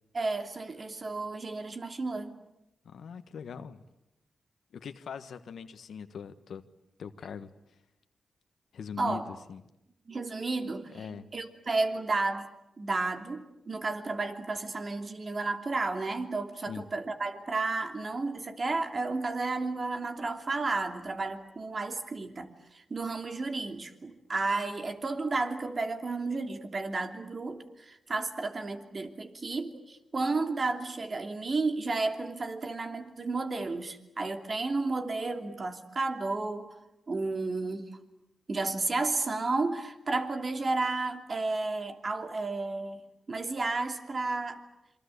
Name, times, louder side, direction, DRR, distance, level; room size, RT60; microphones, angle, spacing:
voice 1, 0.1-2.3 9.0-9.3 10.1-12.5 12.8-22.5 22.7-36.7 37.1-38.0 38.5-43.0 43.3-44.6, right 3 dB, 45° right, 6 dB, 3.0 m, -32 dB
voice 2, 2.8-3.8 4.7-6.6 7.0-7.5 8.7-9.6 10.9-11.3 16.7-16.8, left 6 dB, 80° left, 9 dB, 1.4 m, -41 dB
27.5 x 24.5 x 8.4 m, 0.89 s
cardioid pair, 65°, 0 cm